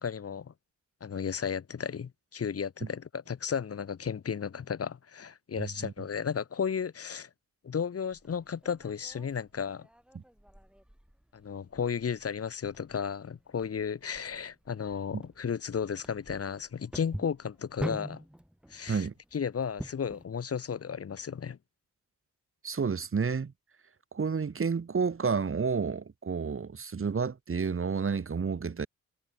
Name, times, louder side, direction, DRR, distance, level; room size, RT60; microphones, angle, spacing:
voice 1, 0.0-0.5 1.0-7.3 7.6-9.9 11.3-18.2 18.7-21.6, left 7 dB, 50° left, 1.8 m, -34 dB
voice 2, 5.6-5.9 15.1-15.2 18.9-19.1 22.6-23.5 24.1-28.9, right 5 dB, 45° right, 4.4 m, -30 dB
sound 1, 8.1-20.2, equal, 5° right, 5.4 m, -45 dB
cardioid pair, 80°, 30 cm